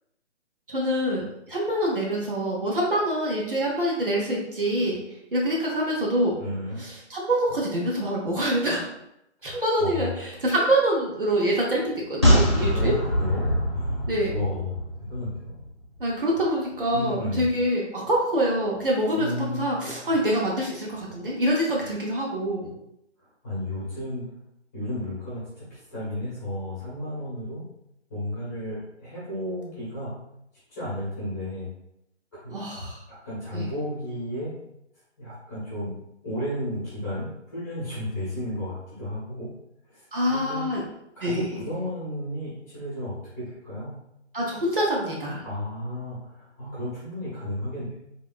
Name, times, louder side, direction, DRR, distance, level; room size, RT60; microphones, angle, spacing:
voice 1, 0.7-5.0 5.3-6.3 6.8-8.8 9.4-12.9 14.1-14.3 16.0-22.7 32.5-33.0 33.5-33.7 40.1-40.8 41.2-41.5 44.3-45.4, right 1 dB, 50° right, -3 dB, 0.8 m, -25 dB
voice 2, 6.4-6.8 9.4-10.1 12.7-15.6 16.9-17.5 19.1-19.8 20.1-20.2 23.4-24.3 24.7-27.6 28.1-30.1 30.7-31.7 32.3-32.7 33.2-34.5 35.2-35.9 36.2-39.5 39.9-40.6 41.1-43.9 45.4-47.9, left 1 dB, 15° left, -10 dB, 1.1 m, -33 dB
sound 1, 12.2-15.7 16.0-16.1, equal, 25° right, 0.4 m, -23 dB
3.6 x 2.8 x 2.4 m, 0.81 s
figure-of-eight pair, 150°, 36 cm